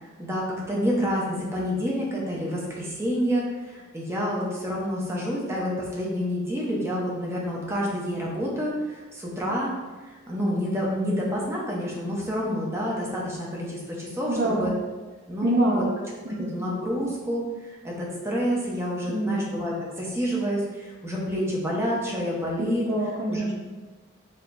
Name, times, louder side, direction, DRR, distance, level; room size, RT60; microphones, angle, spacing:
voice 1, 0.0-9.7 10.0-14.7 15.3-15.8 16.5-22.9 23.3-23.5, equal, 15° right, -4 dB, 0.9 m, -28 dB
voice 2, 14.3-14.8 15.4-16.5 19.1-19.4 22.6-23.5, right 2 dB, 55° right, -2 dB, 0.7 m, -26 dB
6.4 x 2.9 x 2.6 m, 1.3 s
head